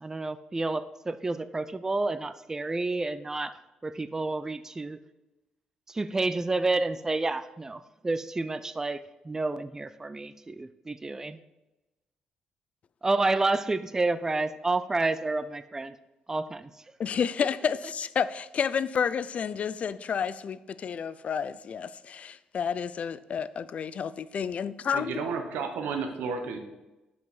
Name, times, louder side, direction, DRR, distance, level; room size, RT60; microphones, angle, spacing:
voice 1, 0.0-5.0 5.9-11.4 13.0-16.0 16.3-16.7, right 2 dB, 20° right, 0.4 m, -30 dB
voice 2, 17.0-25.2, left 7 dB, 50° left, 0.4 m, -30 dB
voice 3, 24.9-26.6, right 5 dB, 85° right, 1.0 m, -32 dB
5.5 x 5.3 x 6.0 m
cardioid pair, 80°, 3 cm